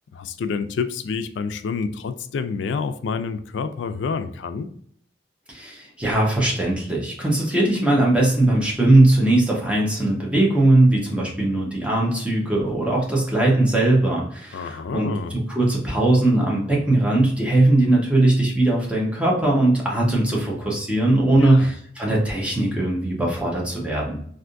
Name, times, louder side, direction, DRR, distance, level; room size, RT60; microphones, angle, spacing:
voice 1, 0.1-4.7 14.5-15.4 21.3-21.7, left 5 dB, 80° left, 11 dB, 0.3 m, -28 dB
voice 2, 5.5-15.1 15.5-24.2, right 2 dB, 5° right, -4 dB, 0.9 m, -19 dB
3.4 x 2.6 x 2.5 m, 0.63 s
head